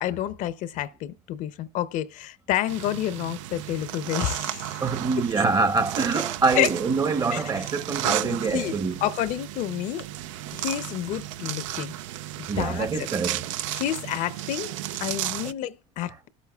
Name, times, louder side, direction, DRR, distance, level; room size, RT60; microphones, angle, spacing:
voice 1, 0.0-4.8 6.6-6.7 7.3-7.4 8.0-8.7 9.0-10.0 10.5-11.9 12.4-12.9 13.7-14.7 15.0-16.3, left 12 dB, 55° left, 0.6 m, -29 dB
sound 1, 2.7-15.5, right 13 dB, 85° right, 0.5 m, -34 dB
voice 2, 4.8-9.0 12.5-13.4, right 4 dB, 25° right, 0.8 m, -25 dB
19.5 x 8.3 x 2.3 m
supercardioid pair, 110°, 16 cm